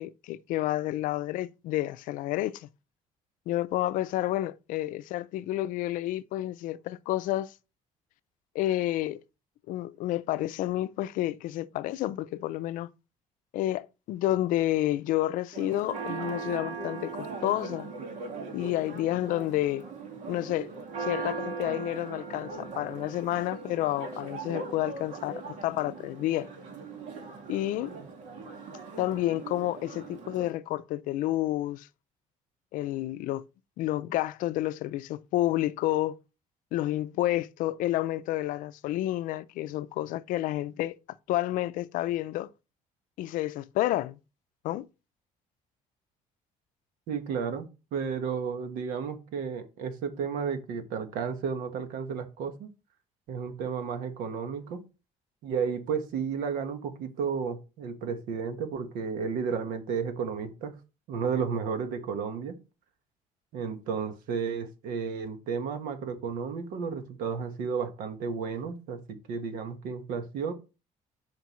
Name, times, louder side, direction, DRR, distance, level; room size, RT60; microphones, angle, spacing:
voice 1, 0.0-2.7 3.5-7.5 8.5-9.2 9.7-12.9 13.5-17.9 18.5-19.8 20.3-20.7 21.0-26.5 27.5-27.9 29.0-31.9 32.7-33.4 33.8-36.2 36.7-40.9 41.3-42.5 43.2-44.2 44.6-44.9, left 15 dB, 75° left, 0.5 m, -30 dB
Church bell, 15.5-30.5, right 4 dB, 60° right, 1.9 m, -39 dB
voice 2, 47.1-52.7 53.3-54.8 55.4-60.8 61.1-62.6 63.5-70.5, right 6 dB, 85° right, 1.4 m, -33 dB
9.2 x 5.2 x 3.1 m
cardioid pair, 155°, 14 cm